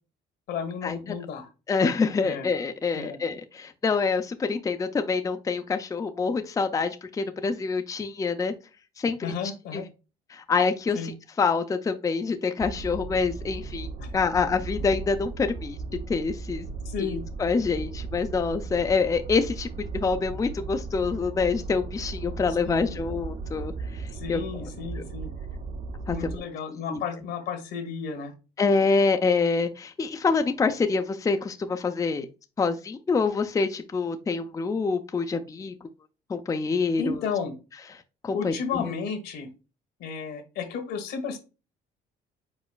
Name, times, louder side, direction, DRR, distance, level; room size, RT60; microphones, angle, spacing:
voice 1, 0.5-1.5 2.2-2.5 2.9-3.2 9.2-9.9 10.9-11.1 14.0-14.1 14.5-14.6 16.8-17.2 22.6-23.0 24.1-25.3 26.1-28.3 37.0-37.5 38.3-39.5 40.0-41.4, left 6 dB, 80° left, 6 dB, 1.5 m, -33 dB
voice 2, 1.7-8.5 9.0-9.2 9.7-9.8 10.3-11.1 11.4-13.9 14.1-15.8 16.1-16.7 17.4-24.4 25.0-25.1 26.1-26.3 26.9-27.0 28.6-32.3 32.6-35.7 36.3-37.2 38.2-38.8, left 4 dB, 20° left, 7 dB, 0.5 m, -26 dB
sound 1, 12.6-26.4, right 4 dB, 55° right, 0.7 m, -36 dB
5.1 x 4.2 x 2.3 m, 0.30 s
cardioid pair, 110°, 17 cm